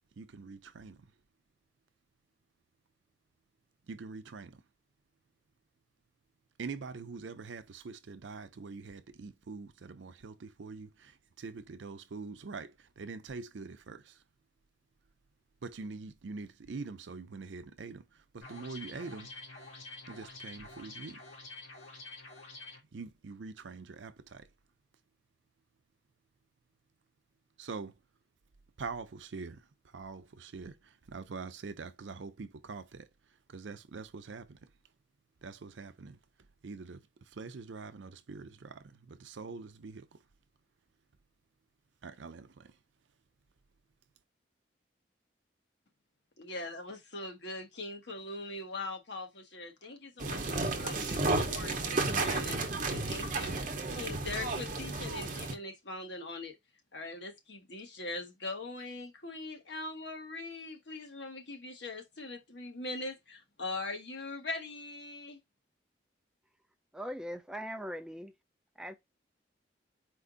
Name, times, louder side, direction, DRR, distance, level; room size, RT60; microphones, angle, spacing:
voice 1, 0.2-1.1 3.9-4.6 6.6-14.2 15.6-19.3 20.1-21.2 22.9-24.5 27.6-27.9 28.8-29.6 29.9-33.1 33.5-34.6 35.4-36.2 36.6-40.2 42.0-42.7, right 4 dB, 75° right, 0.5 m, -44 dB
sound 1, 18.4-22.8, left 3 dB, 90° left, 1.8 m, -48 dB
voice 2, 46.4-52.6 52.9-53.6 53.9-56.6 56.9-65.4, left 2 dB, 65° left, 1.2 m, -41 dB
sound 2, 50.2-55.5, right 3 dB, 45° right, 0.8 m, -32 dB
voice 3, 66.9-68.3 68.8-68.9, equal, 5° right, 0.4 m, -40 dB
4.5 x 2.5 x 3.8 m
head